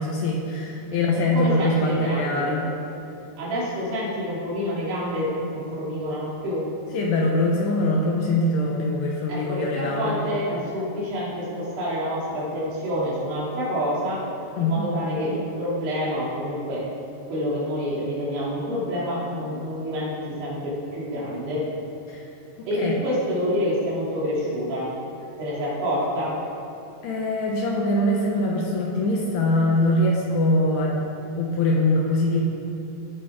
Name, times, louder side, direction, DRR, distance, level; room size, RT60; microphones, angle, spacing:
voice 1, 0.0-2.6 6.9-10.2 14.6-14.8 22.1-22.3 22.6-23.0 27.0-31.1 31.3-32.4, left 1 dB, 75° left, -2 dB, 2.5 m, -23 dB
voice 2, 1.3-2.5 3.4-6.7 9.3-14.2 14.6-16.9 17.3-21.6 22.6-24.9 25.4-26.4, equal, 65° right, -7 dB, 5.0 m, -27 dB
17.5 x 8.5 x 3.7 m, 2.7 s
omnidirectional pair, 5.8 m